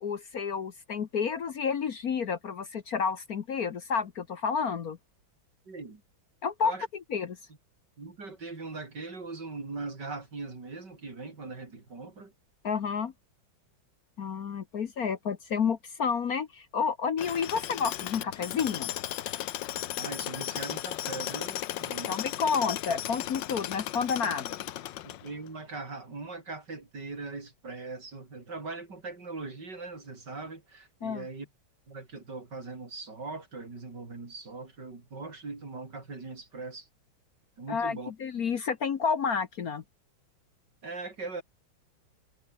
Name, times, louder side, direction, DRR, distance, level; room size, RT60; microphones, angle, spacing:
voice 1, 0.0-5.0 6.4-6.7 7.1-7.4 12.6-13.1 14.2-18.9 22.1-24.6 31.0-31.2 37.7-39.8, left 6 dB, 50° left, 1.4 m, -30 dB
voice 2, 5.7-6.0 6.6-6.9 8.0-12.3 20.0-22.2 25.0-31.5 31.9-36.9 37.6-38.1 40.8-41.4, right 3 dB, 55° right, 4.7 m, -40 dB
Tools, 17.2-25.5, left 13 dB, 65° left, 1.4 m, -36 dB
omnidirectional pair, 2.2 m